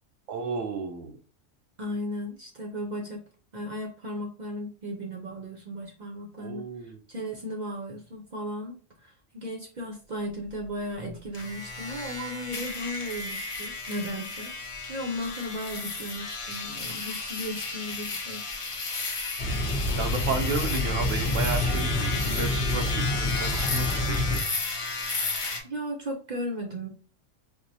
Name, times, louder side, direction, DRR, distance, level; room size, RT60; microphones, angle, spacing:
voice 1, 0.3-1.2 6.4-7.0 19.9-24.4, right 5 dB, 80° right, 4 dB, 0.9 m, -33 dB
voice 2, 1.8-3.2 3.5-14.5 14.9-18.4 25.6-26.9, equal, 45° right, 0 dB, 0.6 m, -35 dB
sound 1, 11.3-25.6, left 3 dB, 40° left, 0.5 m, -33 dB
sound 2, 19.4-24.4, left 2 dB, 55° left, 0.9 m, -27 dB
4.5 x 2.1 x 2.6 m, 0.37 s
omnidirectional pair, 1.3 m